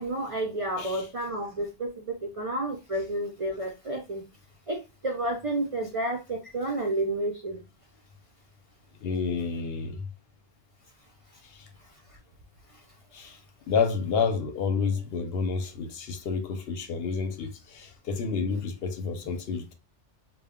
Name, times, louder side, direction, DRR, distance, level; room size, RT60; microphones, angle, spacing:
voice 1, 0.0-4.2 4.7-7.6 13.2-13.3, right 1 dB, 60° right, 0.3 m, -31 dB
voice 2, 9.0-10.0 11.4-11.7 13.1-13.4 13.7-19.7, left 5 dB, 65° left, 0.8 m, -29 dB
2.1 x 2.1 x 3.5 m
omnidirectional pair, 1.2 m